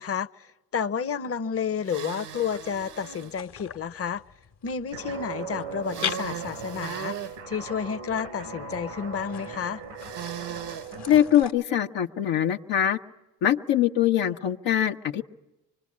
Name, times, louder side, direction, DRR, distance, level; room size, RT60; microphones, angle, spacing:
voice 1, 0.0-4.2 4.6-7.2 7.5-9.8, left 7 dB, 30° left, 0.8 m, -31 dB
sound 1, 1.8-3.3 5.9-7.4 10.0-10.9, right 10 dB, 70° right, 1.1 m, -37 dB
sound 2, 2.3-11.5, left 7 dB, 65° left, 1.4 m, -42 dB
Guitar, 4.9-11.4, right 4 dB, 85° right, 3.3 m, -39 dB
voice 2, 11.1-13.0 13.4-15.2, left 10 dB, 80° left, 1.1 m, -23 dB
25.0 x 21.5 x 8.5 m
hypercardioid pair, 40°, 43 cm